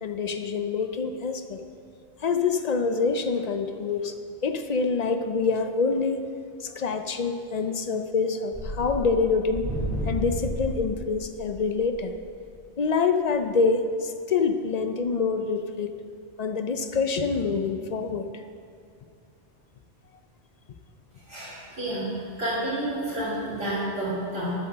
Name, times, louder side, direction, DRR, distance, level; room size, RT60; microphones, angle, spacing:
voice 1, 0.0-1.6 2.2-4.1 4.4-6.3 6.6-9.7 10.1-12.1 12.8-15.9 16.4-18.4, left 4 dB, 50° left, 8 dB, 0.5 m, -26 dB
sound 1, 8.5-12.6, equal, 15° left, 2.7 m, -32 dB
voice 2, 21.3-24.6, right 1 dB, 65° right, -11 dB, 3.1 m, -30 dB
8.5 x 7.4 x 6.8 m, 2.3 s
omnidirectional pair, 1.1 m